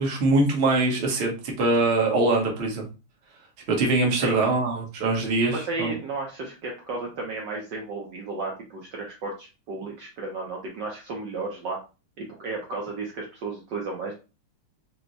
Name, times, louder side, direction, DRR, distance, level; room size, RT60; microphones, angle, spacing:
voice 1, 0.0-2.9 3.7-5.9, right 2 dB, 40° right, 0 dB, 1.1 m, -23 dB
voice 2, 5.5-11.8 12.2-14.2, right 3 dB, 65° right, -1 dB, 1.3 m, -33 dB
4.6 x 2.2 x 3.9 m, 0.31 s
omnidirectional pair, 2.4 m